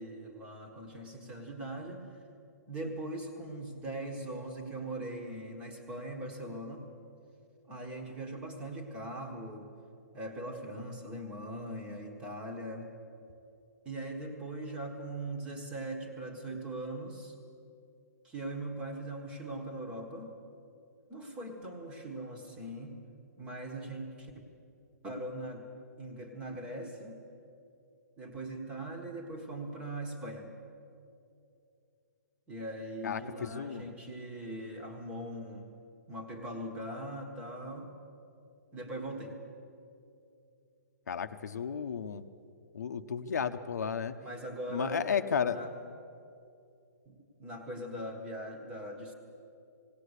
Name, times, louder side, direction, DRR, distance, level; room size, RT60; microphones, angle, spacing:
voice 1, 0.0-2.1 2.7-6.8 7.7-9.7 10.1-12.9 13.8-17.3 18.2-20.4 21.1-22.9 23.4-24.3 25.0-25.7 26.0-27.2 28.2-30.5 32.5-35.7 36.1-37.9 38.7-39.4 44.2-45.1 45.4-45.7 47.1-49.1, right 1 dB, 10° right, 3 dB, 1.5 m, -40 dB
voice 2, 33.0-33.9 41.1-42.2 42.7-44.1 44.7-45.6, left 7 dB, 70° left, 9 dB, 0.9 m, -33 dB
19.0 x 17.5 x 8.2 m, 2.6 s
hypercardioid pair, 170°, 9 cm